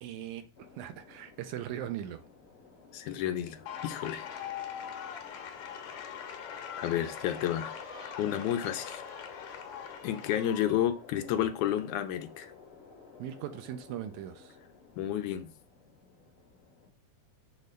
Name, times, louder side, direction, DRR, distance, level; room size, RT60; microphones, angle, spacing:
voice 1, 0.0-2.2 13.2-14.6, right 11 dB, 80° right, 2.1 m, -39 dB
sound 1, 0.6-16.9, left 5 dB, 50° left, 1.0 m, -51 dB
voice 2, 2.9-4.3 6.8-7.7 8.2-9.0 10.0-12.5 15.0-15.5, left 11 dB, 85° left, 2.1 m, -31 dB
sound 2, 3.7-10.9, left 8 dB, 70° left, 2.2 m, -42 dB
6.5 x 3.2 x 5.2 m
omnidirectional pair, 3.5 m